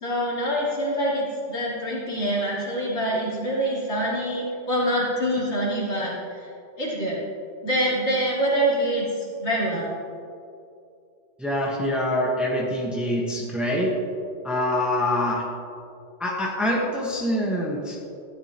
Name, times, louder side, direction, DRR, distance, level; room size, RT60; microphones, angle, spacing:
voice 1, 0.0-6.1 6.8-7.1 7.6-9.0 9.4-9.9, right 1 dB, 70° left, -7 dB, 3.1 m, -25 dB
voice 2, 11.4-13.9 14.4-15.4 16.2-18.0, left 1 dB, ahead, -3 dB, 1.3 m, -25 dB
14.0 x 10.5 x 3.0 m, 2.5 s
omnidirectional pair, 1.2 m